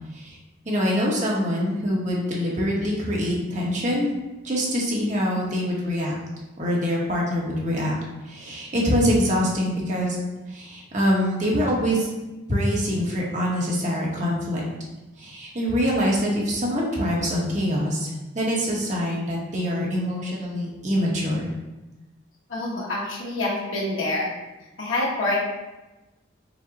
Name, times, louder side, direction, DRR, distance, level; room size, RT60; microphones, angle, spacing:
voice 1, 0.6-4.1 4.4-6.2 6.6-7.9 8.2-10.2 10.5-12.1 12.5-14.6 15.2-21.5, equal, 35° right, -3 dB, 0.9 m, -24 dB
voice 2, 22.5-24.3 24.8-25.4, left 2 dB, 85° left, -4 dB, 1.1 m, -26 dB
4.9 x 2.0 x 3.9 m, 1.1 s
head